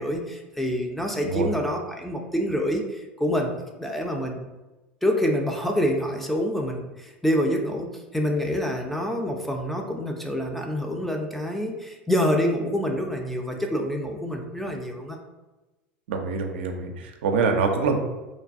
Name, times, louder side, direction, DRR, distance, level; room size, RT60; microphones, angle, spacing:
voice 1, 0.0-4.4 5.0-15.2, equal, 5° left, 2 dB, 0.4 m, -27 dB
voice 2, 16.1-18.0, right 4 dB, 75° right, 4 dB, 0.4 m, -25 dB
3.1 x 2.2 x 2.5 m, 1.1 s
hypercardioid pair, 90°, 6 cm